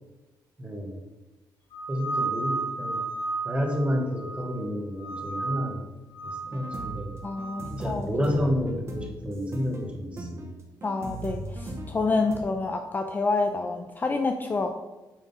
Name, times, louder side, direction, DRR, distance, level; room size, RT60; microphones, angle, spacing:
voice 1, 0.6-0.9 1.9-3.0 3.4-5.8 6.2-7.1 7.7-10.5, equal, 15° right, 1 dB, 1.5 m, -30 dB
sound 1, 1.7-4.6 5.0-5.8 6.1-7.7, right 3 dB, 80° left, 2.0 m, -33 dB
sound 2, 6.4-12.4, right 1 dB, 35° right, 1.3 m, -38 dB
voice 2, 7.2-8.1 10.8-14.8, left 3 dB, 25° left, 5 dB, 0.5 m, -28 dB
9.0 x 3.8 x 5.6 m, 1.1 s
cardioid pair, 140°, 8 cm